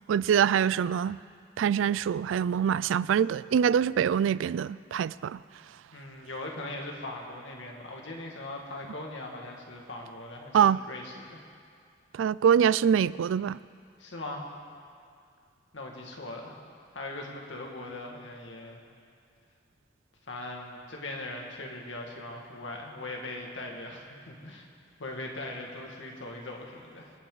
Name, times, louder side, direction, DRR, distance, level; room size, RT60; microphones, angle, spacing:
voice 1, 0.1-1.2 1.6-5.4 10.5-10.8 12.2-13.6, right 8 dB, 90° right, 0.3 m, -24 dB
voice 2, 5.9-11.4 14.0-14.5 15.7-16.5 16.9-18.8 20.3-24.7 25.0-27.1, left 2 dB, 80° left, 2.0 m, -40 dB
27.0 x 9.1 x 4.0 m
head